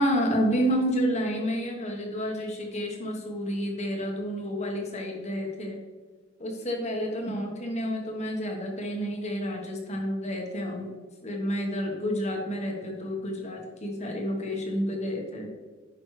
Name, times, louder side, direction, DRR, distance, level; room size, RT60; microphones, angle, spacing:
voice 1, 0.0-5.8 6.4-10.9 11.2-15.5, equal, 35° left, 1 dB, 1.2 m, -29 dB
11.0 x 5.2 x 3.2 m, 1.4 s
head